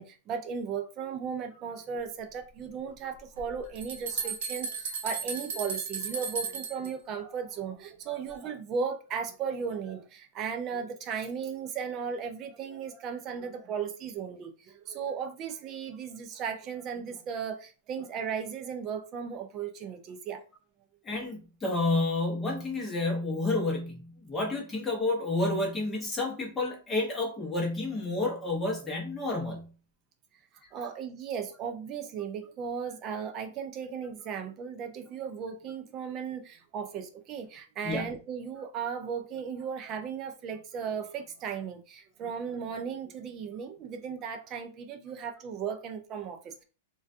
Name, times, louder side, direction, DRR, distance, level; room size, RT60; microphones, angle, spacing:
voice 1, 0.0-20.4 30.7-46.6, right 6 dB, 25° right, 0.4 m, -36 dB
sound 1, 3.4-6.9, right 5 dB, 70° right, 0.7 m, -35 dB
voice 2, 21.1-29.7 37.8-38.1, left 2 dB, 10° left, 0.8 m, -30 dB
2.2 x 2.2 x 2.6 m
supercardioid pair, 165°, 0 cm